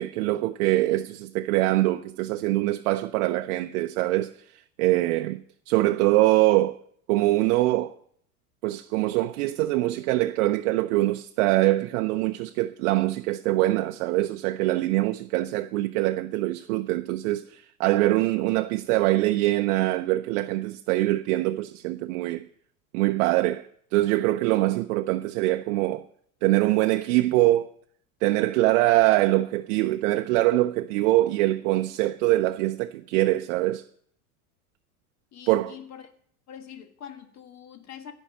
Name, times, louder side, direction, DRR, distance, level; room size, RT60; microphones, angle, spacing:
voice 1, 0.0-6.8 7.1-7.9 8.6-22.5 22.9-26.0 26.4-27.7 28.2-33.8 35.5-35.7, right 17 dB, 60° right, 0.7 m, -23 dB
voice 2, 35.3-36.1 36.5-38.1, left 9 dB, 35° left, 1.6 m, -44 dB
15.0 x 5.5 x 7.8 m
hypercardioid pair, 105°, 44 cm